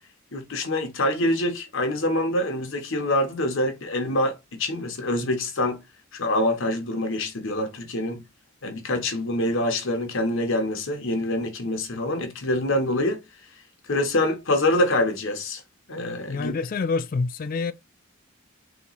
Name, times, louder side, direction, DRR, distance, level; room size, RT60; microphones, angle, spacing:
voice 1, 0.3-5.8 6.1-8.2 8.6-13.2 13.9-15.6 15.9-16.5, left 1 dB, 60° left, 0.9 m, -25 dB
voice 2, 16.3-17.7, left 4 dB, 40° left, 0.3 m, -27 dB
3.5 x 2.9 x 3.9 m
head